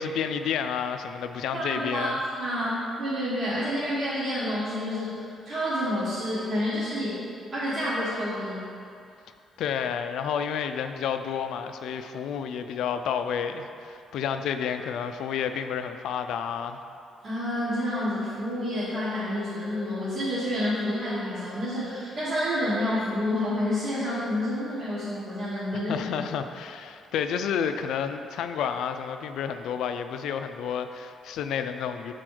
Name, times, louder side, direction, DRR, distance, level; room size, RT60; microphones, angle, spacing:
voice 1, 0.0-2.2 9.6-16.8 25.9-32.1, left 7 dB, 80° left, 8 dB, 0.3 m, -30 dB
voice 2, 1.5-2.1 2.4-5.2 5.4-7.2 7.5-8.6 17.2-26.1, left 1 dB, 55° right, -11 dB, 1.5 m, -29 dB
6.1 x 4.1 x 4.8 m, 2.6 s
cardioid pair, 90°, 0 cm